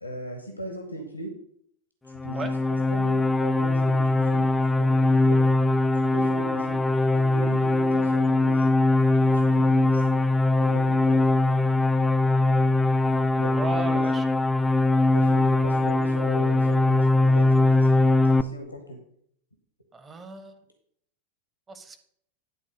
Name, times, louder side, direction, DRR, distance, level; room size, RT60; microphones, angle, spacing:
voice 1, 0.0-1.3 2.1-4.5 4.8-5.4 5.9-6.8 7.1-8.7 9.0-10.1 10.6-11.2 13.4-14.0 15.1-17.9 18.3-19.0, right 1 dB, 85° left, 4 dB, 1.2 m, -38 dB
sound 1, 2.1-18.4, left 2 dB, 10° left, 0.4 m, -21 dB
voice 2, 13.5-14.2 19.9-20.6 21.7-22.0, right 3 dB, 20° right, 7 dB, 1.2 m, -35 dB
11.0 x 4.0 x 6.3 m, 0.67 s
figure-of-eight pair, 90°, 0 cm